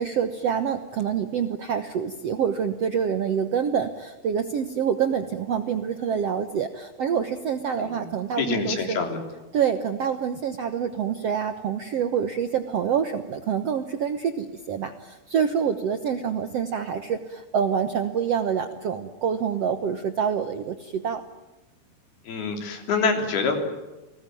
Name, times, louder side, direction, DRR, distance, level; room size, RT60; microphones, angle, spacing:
voice 1, 0.0-9.0 9.5-21.2, right 7 dB, 70° right, 8 dB, 1.5 m, -26 dB
voice 2, 8.4-9.2 22.3-23.6, left 5 dB, 80° left, 4 dB, 5.3 m, -26 dB
30.0 x 20.0 x 9.3 m, 1.1 s
omnidirectional pair, 4.4 m